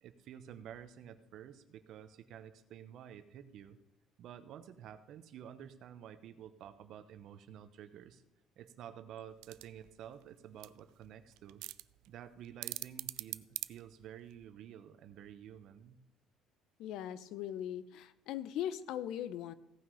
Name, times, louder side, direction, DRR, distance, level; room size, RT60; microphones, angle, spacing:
voice 1, 0.0-3.8 4.2-8.2 8.6-11.6 12.0-16.0, right 9 dB, 55° right, 11 dB, 0.9 m, -51 dB
sound 1, 9.3-14.5, right 18 dB, 85° right, 0.4 m, -45 dB
voice 2, 16.8-19.5, left 11 dB, 65° left, 15 dB, 0.7 m, -39 dB
16.5 x 6.0 x 5.5 m, 0.96 s
cardioid pair, 165°, 0 cm